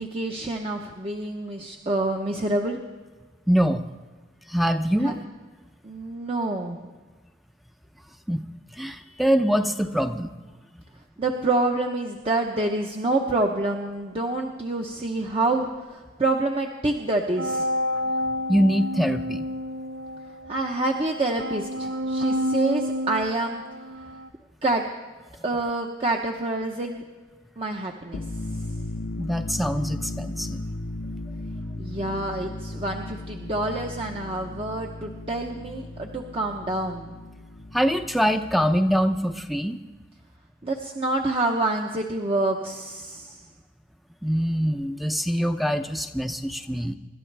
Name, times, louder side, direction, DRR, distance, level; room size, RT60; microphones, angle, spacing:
voice 1, 0.0-2.8 5.0-5.1 5.8-6.8 11.2-17.7 20.5-23.6 24.6-24.8 25.4-27.0 27.6-28.2 31.8-37.1 40.6-43.4, right 2 dB, 30° right, 2 dB, 0.9 m, -27 dB
voice 2, 3.5-3.9 4.5-5.2 8.3-8.4 8.7-10.3 18.5-19.5 29.2-30.6 37.7-39.8 44.2-46.9, equal, ahead, 7 dB, 0.6 m, -24 dB
sound 1, 17.4-24.3, left 1 dB, 70° right, 0.6 m, -30 dB
sound 2, 28.0-39.6, left 1 dB, 85° left, 0.8 m, -36 dB
26.0 x 12.5 x 3.4 m, 1.3 s
head